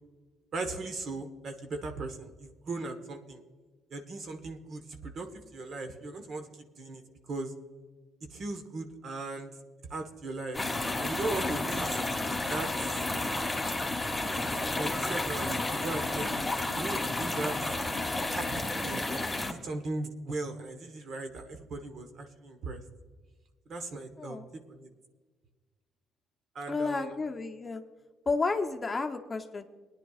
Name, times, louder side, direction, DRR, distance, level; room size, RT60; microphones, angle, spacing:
voice 1, 0.5-3.4 3.9-7.5 8.3-9.5 9.9-10.7 11.0-12.0 12.5-13.0 14.8-17.7 18.3-22.8 23.7-24.9 26.5-27.1, right 2 dB, 55° right, 6 dB, 1.3 m, -38 dB
sound 1, 10.5-19.5, left 2 dB, 5° left, 1.6 m, -31 dB
voice 2, 26.7-27.8 28.3-29.6, left 3 dB, 25° left, 4 dB, 0.9 m, -31 dB
20.0 x 10.0 x 2.4 m, 1.4 s
supercardioid pair, 75°, 0 cm